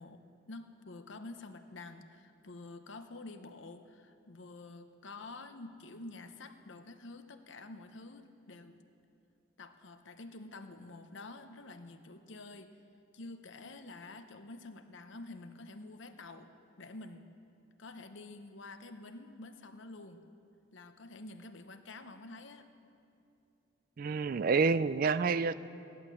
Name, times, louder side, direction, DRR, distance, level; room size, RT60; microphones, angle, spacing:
voice 1, 0.0-8.8 9.6-12.7 13.1-16.5 16.8-17.3 17.8-20.2 20.7-22.7, left 2 dB, 65° left, 8 dB, 0.9 m, -48 dB
voice 2, 24.0-25.5, right 4 dB, 45° right, 14 dB, 0.3 m, -28 dB
15.5 x 11.5 x 7.0 m, 2.7 s
head